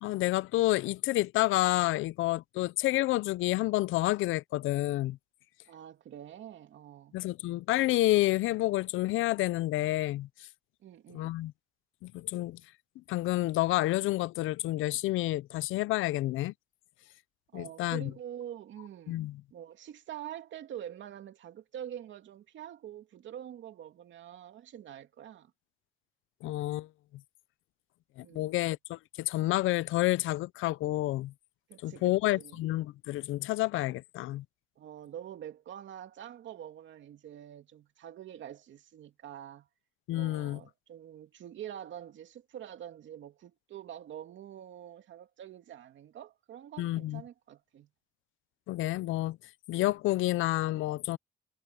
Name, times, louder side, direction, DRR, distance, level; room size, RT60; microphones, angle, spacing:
voice 1, 0.0-5.2 7.1-10.3 11.1-11.5 12.0-12.6 13.1-16.5 17.5-18.1 19.1-19.4 26.4-26.9 28.2-31.3 31.8-34.4 40.1-40.6 46.8-47.2 48.7-49.4 49.7-51.2, left 17 dB, 85° left, 0.5 m, -29 dB
voice 2, 5.7-7.2 10.8-11.3 17.5-19.3 19.5-25.5 28.2-28.7 31.7-32.6 34.8-39.7 40.1-47.9, right 10 dB, 70° right, 2.6 m, -46 dB
cardioid pair, 90°, 20 cm